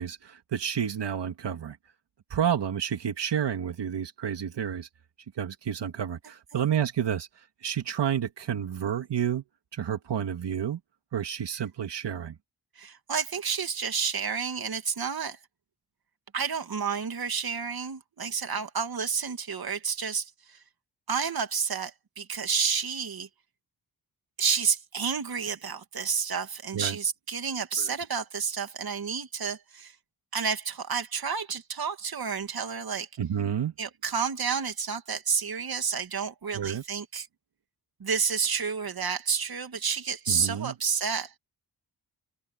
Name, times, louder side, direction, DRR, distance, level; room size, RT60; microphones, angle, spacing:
voice 1, 0.0-1.8 2.3-4.9 5.4-9.4 9.7-10.8 11.1-12.4 26.7-27.0 27.8-27.9 33.2-33.7 36.5-36.8 40.3-40.7, right 9 dB, 80° right, 2.2 m, -30 dB
voice 2, 12.8-15.4 16.3-20.6 21.1-23.3 24.4-30.0 30.3-33.1 33.8-37.3 38.0-41.3, right 6 dB, 60° right, 2.6 m, -30 dB
open air
cardioid pair, 70°, 42 cm